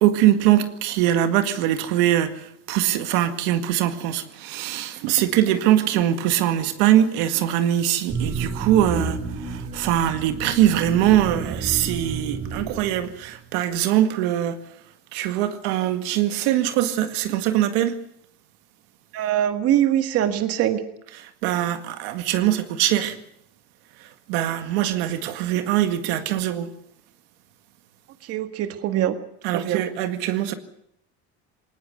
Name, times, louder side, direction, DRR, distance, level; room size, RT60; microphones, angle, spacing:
voice 1, 0.0-2.3 2.7-14.6 15.1-17.9 21.2-23.2 24.3-26.7 29.4-30.5, right 12 dB, 85° right, 2.0 m, -22 dB
sound 1, 8.1-13.4, right 4 dB, 20° right, 4.2 m, -31 dB
voice 2, 19.1-20.8 28.3-29.2 29.5-29.8, right 11 dB, 50° right, 1.7 m, -22 dB
20.0 x 19.0 x 8.1 m
cardioid pair, 140°, 30 cm